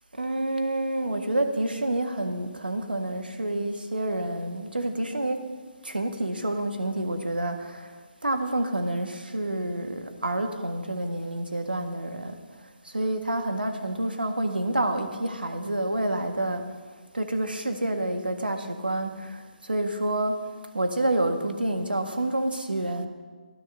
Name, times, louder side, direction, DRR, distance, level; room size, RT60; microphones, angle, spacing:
voice 1, 0.1-5.4 5.8-8.0 8.2-12.4 12.8-16.7 17.1-20.4 20.7-23.1, right 1 dB, 75° right, 6 dB, 1.7 m, -28 dB
23.5 x 16.5 x 2.8 m, 1.4 s
figure-of-eight pair, 140°, 5 cm